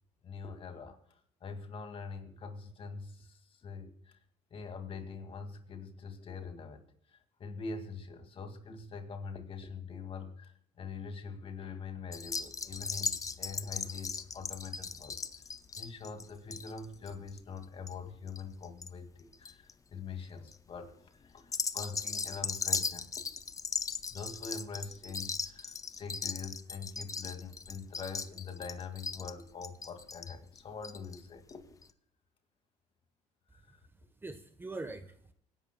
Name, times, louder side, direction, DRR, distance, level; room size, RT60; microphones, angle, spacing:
voice 1, 0.2-1.0 1.4-4.2 4.5-6.9 7.1-15.2 15.8-23.1 24.1-31.6 33.5-33.8, left 5 dB, 40° left, 7 dB, 2.1 m, -44 dB
sound 1, 12.1-18.9 19.2-19.7 20.2-20.5 21.4-31.2 31.5-31.6 31.8-31.9, left 5 dB, 25° left, 0.7 m, -38 dB
voice 2, 33.7-35.3, right 3 dB, 15° right, 9 dB, 1.0 m, -44 dB
25.0 x 11.0 x 2.2 m, 0.64 s
cardioid pair, 105°, 14 cm